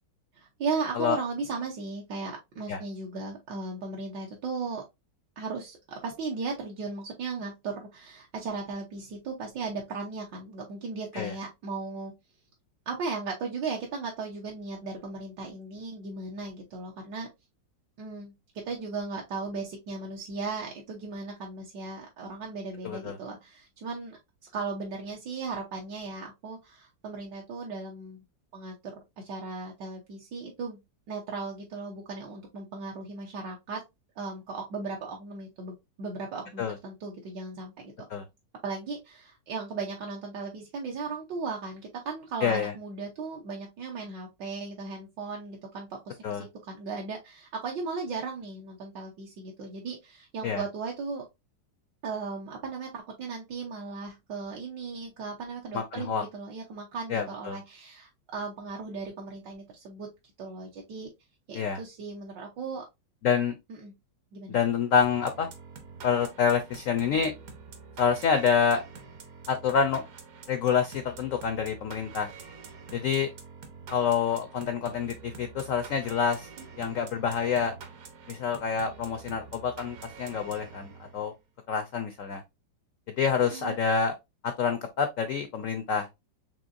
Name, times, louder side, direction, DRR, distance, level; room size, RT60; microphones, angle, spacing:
voice 1, 0.3-4.8 5.4-12.1 12.9-17.3 18.0-18.3 18.6-24.2 24.5-28.2 28.5-28.7 29.2-30.8 31.1-33.8 34.2-37.9 38.6-51.3 52.0-60.1 60.4-61.1 61.5-62.8 63.7-63.9 64.3-64.6 76.6-77.0 83.5-83.8, right 4 dB, 75° right, 1.5 m, -36 dB
voice 2, 22.8-23.1 36.6-36.7 38.1-38.2 42.4-42.7 46.2-46.4 50.4-50.6 55.7-56.2 57.1-57.6 61.5-61.8 63.2-63.5 64.5-65.5 66.0-67.3 68.0-68.8 69.5-70.1 70.5-72.3 72.9-73.3 73.9-76.5 76.8-77.7 78.3-81.3 81.7-82.4 83.1-84.1 84.4-86.1, left 6 dB, 75° left, 0.7 m, -27 dB
sound 1, 65.0-81.3, right 5 dB, 60° right, 1.2 m, -47 dB
5.3 x 3.0 x 2.5 m
omnidirectional pair, 2.0 m